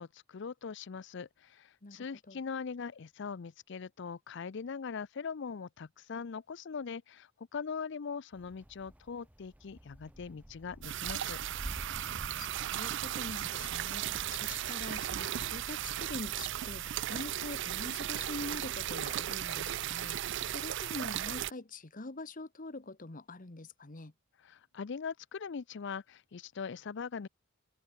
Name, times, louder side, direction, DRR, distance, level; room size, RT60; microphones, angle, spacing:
voice 1, 0.0-11.4 24.4-27.3, left 5 dB, 60° left, 0.5 m, -41 dB
voice 2, 1.8-2.4 12.4-24.1, left 2 dB, 45° left, 1.3 m, -44 dB
sound 1, 8.3-19.1, equal, 10° right, 0.9 m, -50 dB
sound 2, 10.8-21.5, right 12 dB, 65° right, 0.4 m, -36 dB
open air
head